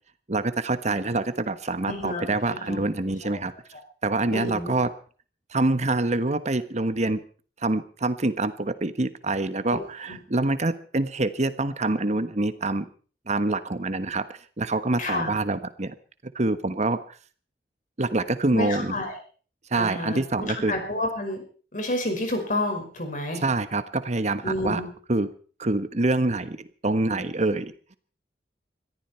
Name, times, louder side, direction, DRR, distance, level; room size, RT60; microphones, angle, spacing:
voice 1, 0.3-3.5 4.0-4.9 5.5-7.2 7.6-12.9 13.3-14.2 14.6-15.9 16.3-17.0 18.0-18.9 19.7-20.7 23.4-24.8 25.1-25.3 25.6-26.6 26.8-28.0, right 2 dB, 40° right, 12 dB, 1.2 m, -26 dB
voice 2, 1.9-2.8 3.2-3.3 4.3-4.7 9.7-9.8 10.1-10.2 15.0-15.3 18.5-19.1 19.7-21.4 21.7-23.4 24.4-24.9, left 1 dB, 50° left, 4 dB, 5.3 m, -30 dB
21.5 x 14.0 x 4.4 m, 0.41 s
head